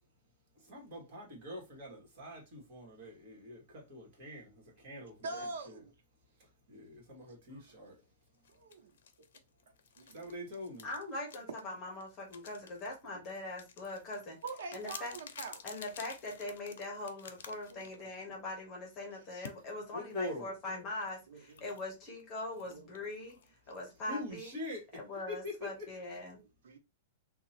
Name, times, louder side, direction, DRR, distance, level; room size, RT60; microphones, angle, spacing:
voice 1, 0.6-5.8 6.7-8.0 10.1-10.9 19.9-20.5 24.1-24.8 25.3-25.7, left 1 dB, 35° right, 1.6 m, -44 dB
voice 2, 5.2-5.9 7.5-7.7 10.0-10.3 14.4-15.6 17.7-18.1 21.3-21.6 22.7-22.9 26.3-26.8, right 3 dB, 80° right, 0.9 m, -44 dB
sound 1, 8.4-18.3 19.4-19.6 20.9-24.7, left 7 dB, 70° left, 0.6 m, -52 dB
voice 3, 10.8-14.4 14.7-15.1 15.6-23.4 23.7-24.5 24.9-26.4, left 2 dB, 20° left, 1.0 m, -42 dB
2.9 x 2.3 x 4.2 m
supercardioid pair, 180°, 0 cm